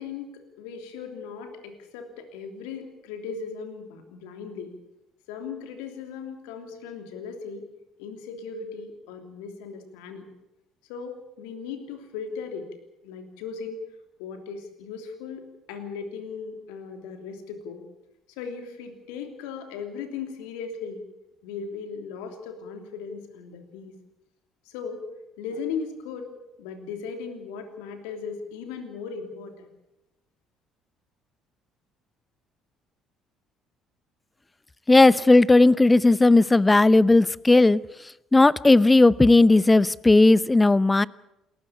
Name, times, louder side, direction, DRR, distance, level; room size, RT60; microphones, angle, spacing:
voice 1, 0.0-4.7 5.3-7.6 8.0-10.3 10.9-12.7 13.0-13.8 14.2-17.8 18.4-21.0 21.4-23.9 24.7-25.0 25.4-26.3 26.6-29.7, left 5 dB, 70° left, 6 dB, 3.1 m, -37 dB
voice 2, 34.9-37.8 38.3-41.1, left 2 dB, 15° left, 21 dB, 0.7 m, -16 dB
28.0 x 14.0 x 8.6 m, 0.92 s
figure-of-eight pair, 50°, 0 cm